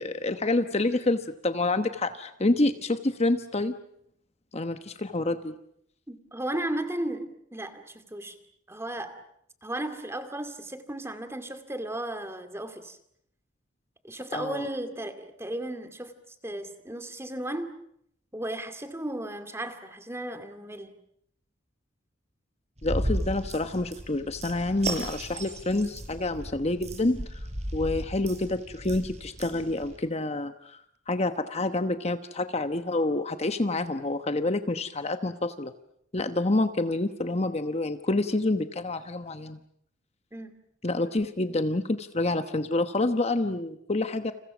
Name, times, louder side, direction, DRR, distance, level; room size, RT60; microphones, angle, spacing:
voice 1, 0.0-3.8 4.5-5.5 14.3-14.7 22.8-27.4 27.7-30.8 31.1-35.7 36.1-39.6 40.8-44.3, left 2 dB, 35° left, 9 dB, 1.1 m, -28 dB
voice 2, 6.1-8.4 8.7-9.2 9.6-13.0 14.0-17.8 18.3-21.0 40.3-40.5, right 1 dB, 15° right, 9 dB, 2.3 m, -35 dB
sound 1, 22.8-30.0, right 1 dB, 35° right, 5.7 m, -35 dB
30.0 x 28.5 x 6.2 m, 0.72 s
head